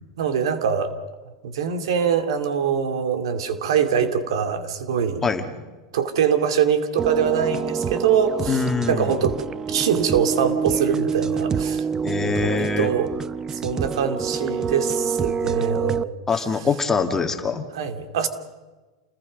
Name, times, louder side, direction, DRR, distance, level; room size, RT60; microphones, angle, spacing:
voice 1, 0.2-0.9 1.4-5.2 5.9-9.4 9.7-11.9 12.4-13.1 13.5-16.1 17.7-18.3, right 7 dB, 80° right, 8 dB, 2.5 m, -23 dB
sound 1, 7.0-16.0, right 6 dB, 20° right, 0.6 m, -26 dB
voice 2, 8.5-9.2 12.0-12.9 16.3-17.7, left 5 dB, 15° left, 6 dB, 1.9 m, -23 dB
28.5 x 20.5 x 5.3 m, 1.2 s
supercardioid pair, 135°, 3 cm